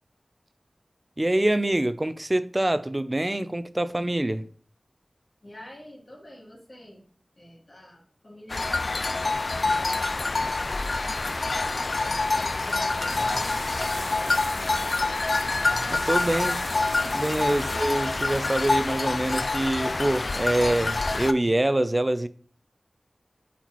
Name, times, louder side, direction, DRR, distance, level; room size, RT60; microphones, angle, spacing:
voice 1, 1.2-4.5 15.9-16.6 17.1-22.3, right 1 dB, 30° right, 0.5 m, -25 dB
voice 2, 5.4-7.0 7.3-10.9 12.3-13.6 14.0-14.8, left 1 dB, 55° left, 3.0 m, -47 dB
sound 1, 8.5-21.3, left 3 dB, 75° left, 0.3 m, -26 dB
sound 2, 12.0-19.2, right 2 dB, 90° right, 1.6 m, -42 dB
8.0 x 4.3 x 3.1 m
wide cardioid pair, 50°, 0 cm